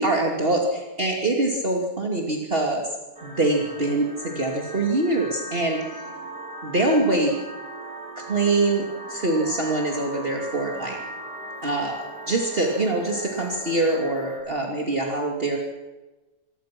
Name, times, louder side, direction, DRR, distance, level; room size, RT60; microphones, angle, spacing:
voice 1, 0.0-2.8 3.2-6.1 6.6-7.3 8.2-11.0 11.6-15.6, right 2 dB, 35° right, -1 dB, 2.9 m, -24 dB
sound 1, 3.2-14.4, right 1 dB, 65° right, 5.6 m, -39 dB
28.0 x 22.5 x 6.1 m, 1.2 s
omnidirectional pair, 1.8 m